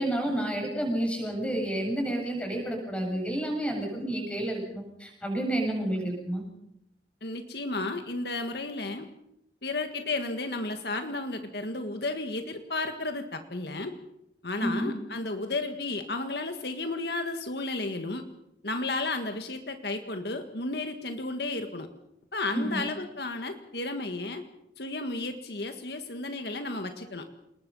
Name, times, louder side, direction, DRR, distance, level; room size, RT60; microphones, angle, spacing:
voice 1, 0.0-6.4 14.6-14.9 22.5-22.8, right 1 dB, 5° left, 2 dB, 7.3 m, -30 dB
voice 2, 7.2-9.1 9.6-14.0 14.4-18.2 18.6-21.9 22.3-24.5 24.8-27.3, left 2 dB, 60° left, 6 dB, 1.8 m, -33 dB
28.5 x 20.5 x 5.6 m, 0.81 s
head